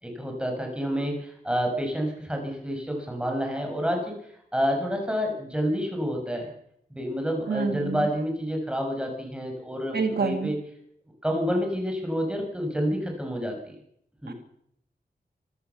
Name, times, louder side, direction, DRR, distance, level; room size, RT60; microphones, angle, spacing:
voice 1, 0.0-4.2 4.5-6.5 6.9-10.6 11.2-13.6 14.2-14.3, equal, 5° right, 2 dB, 6.3 m, -28 dB
voice 2, 7.5-8.1 9.9-10.5 14.3-14.4, right 4 dB, 70° right, 6 dB, 2.1 m, -27 dB
26.0 x 15.0 x 7.0 m, 0.74 s
wide cardioid pair, 130°, 17 cm